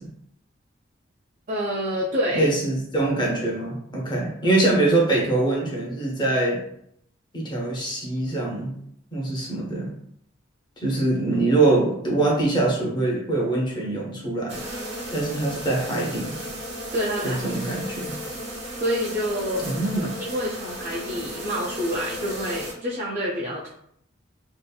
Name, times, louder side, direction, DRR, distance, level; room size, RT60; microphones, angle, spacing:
voice 1, 1.5-2.5 16.9-17.4 18.8-19.7 20.2-23.7, equal, 40° right, -5 dB, 0.4 m, -27 dB
voice 2, 2.3-6.6 7.3-8.8 9.1-9.9 10.8-14.6 15.1-16.3 17.2-18.1 19.7-20.1, right 2 dB, 25° left, -2 dB, 0.6 m, -23 dB
sound 1, 14.5-22.7, equal, 60° right, 0.9 m, -34 dB
2.7 x 2.5 x 2.2 m, 0.70 s
head